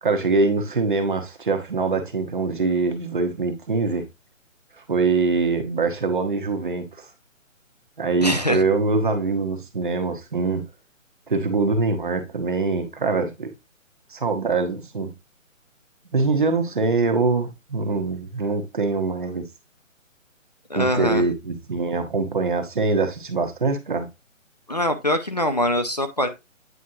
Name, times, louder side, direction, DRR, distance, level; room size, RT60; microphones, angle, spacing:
voice 1, 0.0-4.0 4.9-7.1 8.0-10.6 11.3-13.5 14.1-15.1 16.1-19.5 20.7-24.1, right 3 dB, 40° right, 1.2 m, -23 dB
voice 2, 8.2-8.6 20.7-21.2 24.7-26.3, left 1 dB, 30° left, 0.7 m, -23 dB
9.5 x 5.1 x 2.8 m
hypercardioid pair, 175°, 40 cm